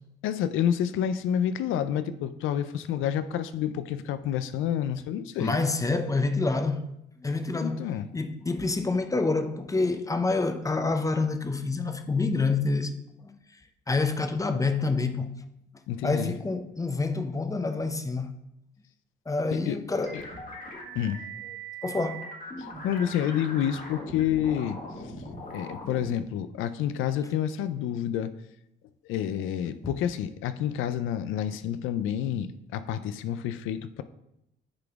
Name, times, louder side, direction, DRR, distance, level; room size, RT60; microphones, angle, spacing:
voice 1, 0.2-5.6 7.6-8.1 15.9-16.3 19.5-19.8 20.1-20.2 20.9-21.3 22.8-24.8 25.5-28.3 29.1-34.0, left 10 dB, 90° left, 0.5 m, -29 dB
voice 2, 5.4-6.9 7.2-12.9 13.2-13.4 13.9-15.4 16.0-18.3 19.3-20.2 21.8-22.2 29.8-30.0, left 3 dB, 15° left, 0.6 m, -27 dB
sound 1, 20.0-26.1, right 1 dB, 45° left, 1.9 m, -40 dB
9.8 x 4.0 x 3.5 m
cardioid pair, 90°, 20 cm